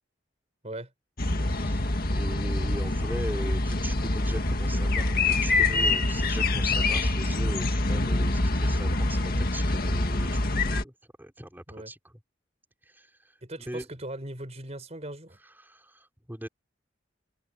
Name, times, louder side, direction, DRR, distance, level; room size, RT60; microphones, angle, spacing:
sound 1, 1.2-10.8, left 2 dB, 55° left, 1.9 m, -25 dB
voice 1, 1.5-1.9 2.1-10.9 11.2-12.0 12.9-13.4 13.7-13.9 15.6-16.5, right 1 dB, 10° right, 4.2 m, -40 dB
voice 2, 13.4-15.4, right 1 dB, 35° right, 5.2 m, -39 dB
head